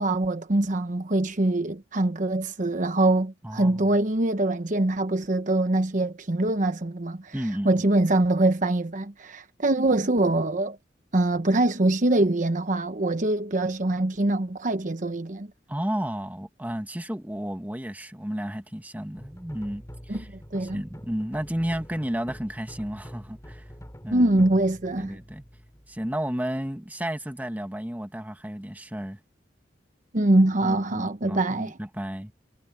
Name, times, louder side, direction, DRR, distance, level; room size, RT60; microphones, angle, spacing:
voice 1, 0.0-7.3 7.6-10.8 11.1-15.5 20.1-20.2 20.5-20.8 24.1-25.2 30.1-31.7, right 2 dB, 45° right, 1.0 m, -23 dB
voice 2, 3.4-3.9 7.3-7.8 15.7-20.3 20.6-23.7 24.0-24.3 25.0-25.4 25.9-29.2 30.6-32.3, equal, 10° right, 1.6 m, -32 dB
sound 1, 19.1-26.4, equal, 15° left, 5.9 m, -45 dB
head